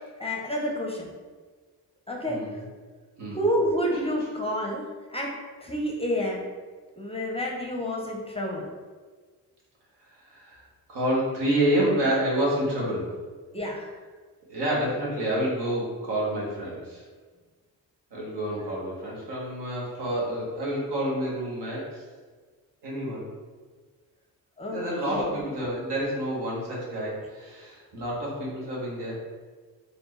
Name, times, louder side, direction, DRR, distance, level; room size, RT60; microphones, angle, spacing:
voice 1, 0.2-1.1 2.1-2.4 3.3-6.4 7.0-8.7 13.5-13.9 18.6-18.7 24.6-25.4, equal, 15° left, 0 dB, 0.6 m, -29 dB
voice 2, 2.2-2.6 3.2-3.4 10.3-10.6 10.9-13.1 14.5-17.0 18.1-22.0 22.8-23.2 24.7-29.1, right 1 dB, 65° right, -5 dB, 1.5 m, -28 dB
4.1 x 2.5 x 3.1 m, 1.4 s
supercardioid pair, 45°, 44 cm